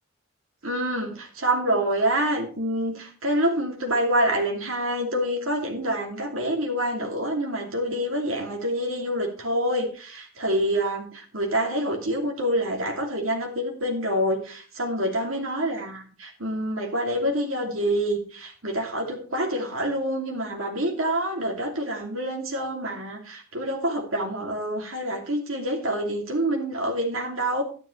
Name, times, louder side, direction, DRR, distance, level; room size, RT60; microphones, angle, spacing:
voice 1, 0.6-27.6, right 1 dB, 75° right, 0 dB, 2.7 m, -27 dB
11.5 x 11.0 x 3.2 m, 0.39 s
head